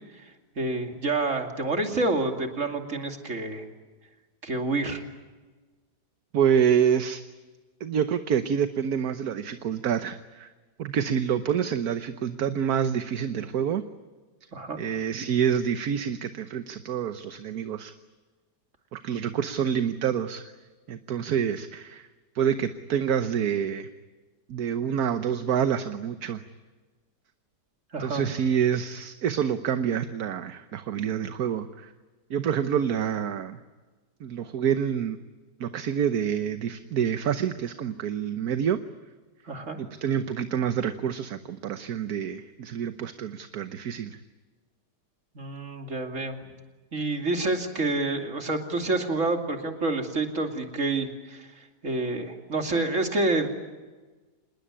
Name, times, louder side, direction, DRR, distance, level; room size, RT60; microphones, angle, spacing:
voice 1, 0.6-3.6 4.4-5.0 14.5-14.8 27.9-28.2 39.4-39.8 45.3-46.4 46.9-53.5, right 2 dB, 45° right, 4 dB, 3.0 m, -28 dB
voice 2, 6.3-7.2 7.8-10.5 10.8-13.8 14.8-17.9 18.9-20.5 20.9-22.1 22.3-23.9 24.5-26.4 28.0-31.9 32.3-33.6 34.2-35.2 35.6-38.8 39.8-44.2, right 8 dB, 65° right, 9 dB, 1.4 m, -27 dB
27.0 x 20.5 x 9.8 m, 1.3 s
omnidirectional pair, 1.8 m